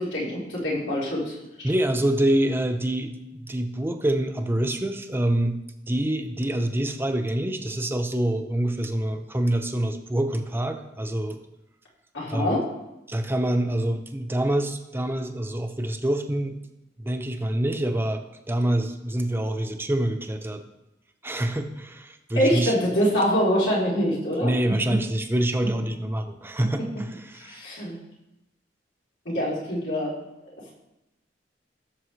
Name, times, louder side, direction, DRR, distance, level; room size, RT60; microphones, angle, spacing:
voice 1, 0.0-1.4 12.1-12.6 22.4-24.5 27.4-28.0 29.3-30.1, equal, 85° left, -6 dB, 3.7 m, -24 dB
voice 2, 1.6-5.6 5.9-11.4 12.3-12.6 13.1-16.6 17.0-20.6 21.2-22.7 24.4-27.6, right 1 dB, 15° right, 6 dB, 0.7 m, -26 dB
16.0 x 6.9 x 3.2 m, 0.93 s
head